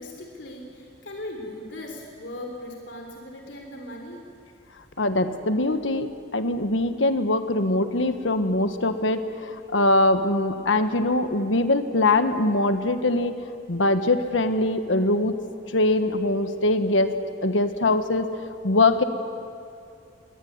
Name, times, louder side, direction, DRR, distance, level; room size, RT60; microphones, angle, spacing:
voice 1, 0.0-4.2, left 1 dB, 70° left, 1 dB, 3.5 m, -38 dB
voice 2, 5.0-13.4 13.7-15.4 15.7-17.2 17.4-19.0, left 2 dB, 90° left, 9 dB, 1.4 m, -22 dB
22.5 x 20.0 x 9.7 m, 2.5 s
head